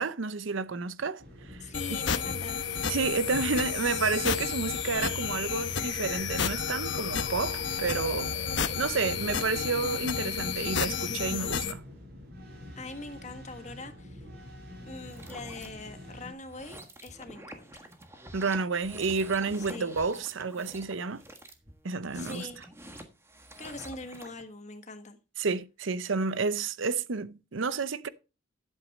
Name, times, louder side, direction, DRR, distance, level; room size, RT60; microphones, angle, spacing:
voice 1, 0.0-1.7 2.9-8.3 8.8-11.8 18.3-21.2 21.8-22.5 25.4-28.1, right 4 dB, 75° right, 0.7 m, -30 dB
sound 1, 1.2-16.3, left 1 dB, 50° right, 6.2 m, -46 dB
voice 2, 1.6-2.7 12.8-14.3 14.9-17.9 19.6-19.9 22.1-22.6 23.6-25.2, left 3 dB, 35° left, 1.5 m, -42 dB
sound 2, 1.7-11.7, left 6 dB, 65° left, 1.0 m, -31 dB
sound 3, 14.9-15.7 16.4-24.4, right 1 dB, 15° right, 1.4 m, -47 dB
11.5 x 8.2 x 4.2 m
head